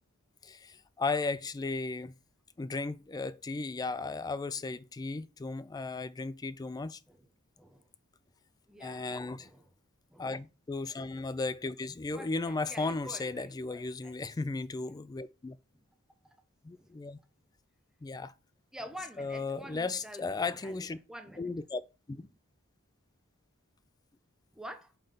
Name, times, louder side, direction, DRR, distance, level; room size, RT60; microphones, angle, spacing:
voice 1, 0.4-2.1 2.6-7.0 8.8-9.5 10.2-15.6 16.6-17.2 18.0-18.3 19.2-21.0 21.4-21.8 22.1-22.3, left 3 dB, 20° left, 0.3 m, -35 dB
voice 2, 8.7-9.1 9.4-9.7 10.1-10.4 12.1-14.2 16.2-16.4 16.8-16.9 18.7-20.8 21.1-21.5 22.1-22.2 24.5-24.9, equal, 5° right, 0.8 m, -48 dB
5.5 x 3.4 x 5.3 m
head